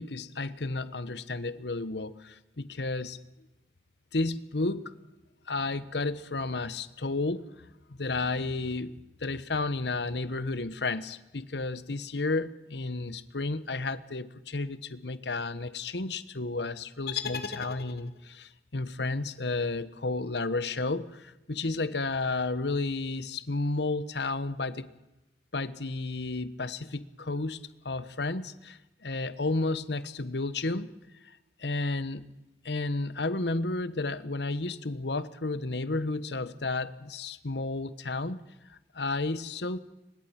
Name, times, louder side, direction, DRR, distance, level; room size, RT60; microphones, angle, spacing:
voice 1, 0.0-3.2 4.1-4.9 5.5-7.4 7.9-24.9 25.5-27.6 27.8-30.9 31.6-32.2 32.6-38.4 38.7-39.8, left 3 dB, 75° left, 15 dB, 1.1 m, -32 dB
sound 1, 17.1-18.4, left 7 dB, 60° left, 1.5 m, -36 dB
24.0 x 21.5 x 5.9 m, 0.99 s
head